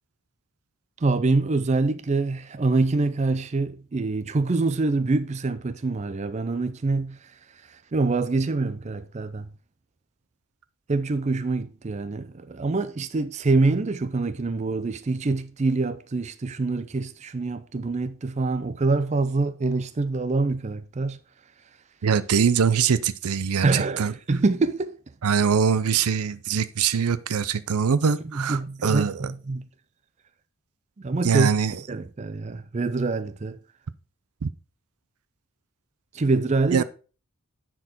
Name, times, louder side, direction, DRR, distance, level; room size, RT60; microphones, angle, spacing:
voice 1, 1.0-7.2 7.9-9.5 10.9-21.2 23.6-25.0 28.3-29.7 31.0-31.5 31.9-33.6 36.1-36.8, right 3 dB, 30° right, 0.4 m, -25 dB
voice 2, 22.0-24.1 25.2-29.3 31.2-31.8 34.4-34.5 36.7-36.8, right 6 dB, 85° right, 0.5 m, -23 dB
9.8 x 4.5 x 4.1 m
head